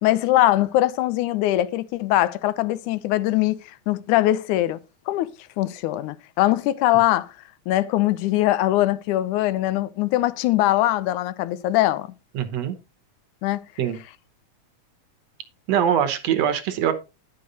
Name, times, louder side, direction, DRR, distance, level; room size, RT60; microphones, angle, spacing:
voice 1, 0.0-3.6 3.9-4.8 5.1-5.3 5.6-7.3 7.7-12.1 13.4-13.6, left 15 dB, 90° left, 2.1 m, -21 dB
voice 2, 12.3-12.8 13.8-14.0 15.7-16.9, right 9 dB, 65° right, 2.0 m, -22 dB
10.5 x 6.6 x 3.9 m
omnidirectional pair, 3.4 m